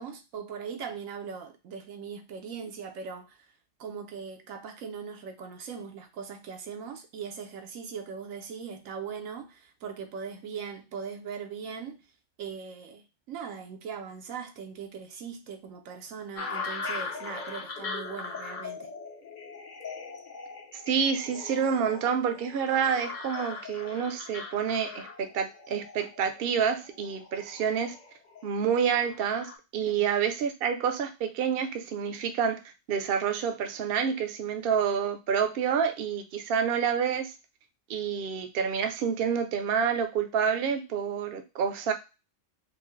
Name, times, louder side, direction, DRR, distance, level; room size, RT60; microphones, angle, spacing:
voice 1, 0.0-3.5 3.8-12.0 12.4-18.9 30.0-30.1, right 6 dB, 90° right, 1.1 m, -40 dB
sound 1, 16.4-29.6, left 4 dB, 45° left, 0.8 m, -40 dB
voice 2, 20.9-28.0 28.4-32.6 32.9-37.3 37.9-41.9, right 7 dB, 55° right, 0.7 m, -28 dB
4.4 x 2.1 x 3.1 m
omnidirectional pair, 1.3 m